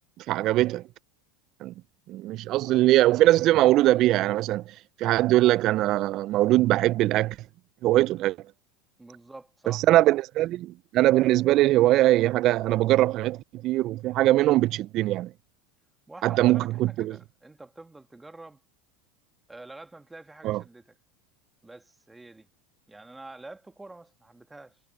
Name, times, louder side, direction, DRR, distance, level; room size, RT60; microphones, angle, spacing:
voice 1, 0.2-0.8 1.6-1.7 2.1-7.4 7.8-8.4 9.7-15.3 16.2-17.2 20.4-20.6, right 16 dB, 50° right, 0.5 m, -22 dB
voice 2, 9.0-9.9 16.1-18.6 19.5-21.0 21.6-22.5 22.9-24.8, right 2 dB, 10° right, 1.8 m, -47 dB
hypercardioid pair, 100°, 0 cm